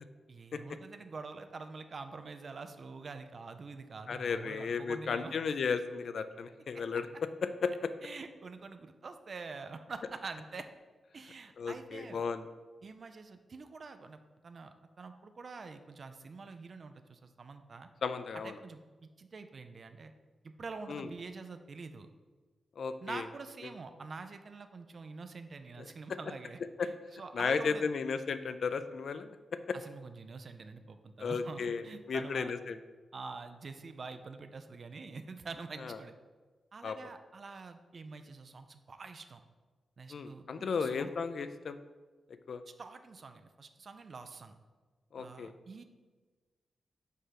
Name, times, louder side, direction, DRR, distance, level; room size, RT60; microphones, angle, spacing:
voice 1, 0.3-5.3 8.0-10.7 11.1-12.2 12.8-17.9 18.3-20.1 20.4-22.1 23.0-27.9 29.7-32.5 33.1-36.1 36.7-39.4 40.0-41.2 42.7-44.6 45.2-45.8, right 4 dB, 40° right, 8 dB, 0.4 m, -46 dB
voice 2, 4.1-7.1 7.6-7.7 11.6-12.4 18.0-18.6 20.9-21.1 22.8-23.2 25.8-25.9 26.8-26.9 27.3-29.4 29.7-29.8 31.2-32.8 35.8-36.0 36.8-37.0 40.1-41.8 42.5-42.6 45.1-45.5, left 5 dB, 55° left, 10 dB, 0.4 m, -34 dB
5.5 x 4.8 x 5.8 m, 1.4 s
wide cardioid pair, 180°, 0 cm